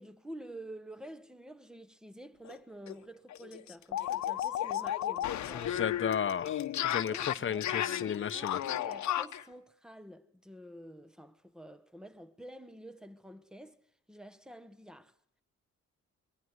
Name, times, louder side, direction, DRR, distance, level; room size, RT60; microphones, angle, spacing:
voice 1, 0.0-5.7 7.1-13.8 14.1-15.1, right 1 dB, ahead, 1.4 m, -49 dB
sound 1, 2.5-2.6 2.9-3.0 3.3-9.4, left 11 dB, 65° left, 1.2 m, -34 dB
voice 2, 5.5-8.6, left 8 dB, 40° left, 1.0 m, -34 dB
23.0 x 22.5 x 8.1 m
cardioid pair, 90°, 30 cm